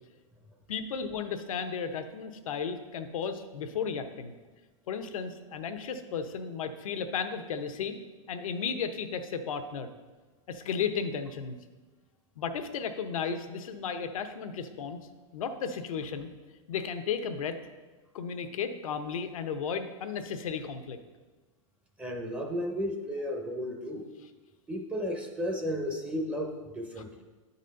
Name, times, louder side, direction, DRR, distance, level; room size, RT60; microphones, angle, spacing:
voice 1, 0.7-4.3 4.9-8.0 8.3-9.9 10.5-11.6 12.4-15.0 15.3-16.3 16.7-17.5 18.1-21.0 27.0-27.1, left 6 dB, 80° left, 8 dB, 0.8 m, -34 dB
voice 2, 22.0-24.1 24.7-27.2, equal, 5° right, 1 dB, 0.6 m, -33 dB
9.3 x 4.2 x 5.2 m, 1.3 s
supercardioid pair, 150°, 17 cm